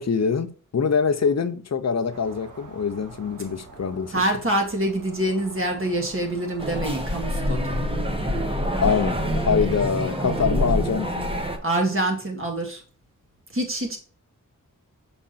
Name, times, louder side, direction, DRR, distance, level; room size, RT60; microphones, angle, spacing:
voice 1, 0.0-4.1 8.8-11.4, left 6 dB, 50° left, 0.9 m, -24 dB
sound 1, 2.1-7.3, right 3 dB, 65° right, 2.0 m, -46 dB
voice 2, 4.1-7.9 11.6-12.8 13.5-14.0, right 1 dB, 40° right, 2.2 m, -25 dB
sound 2, 6.6-11.6, equal, 15° right, 1.3 m, -26 dB
6.2 x 5.4 x 4.2 m
wide cardioid pair, 100°, 33 cm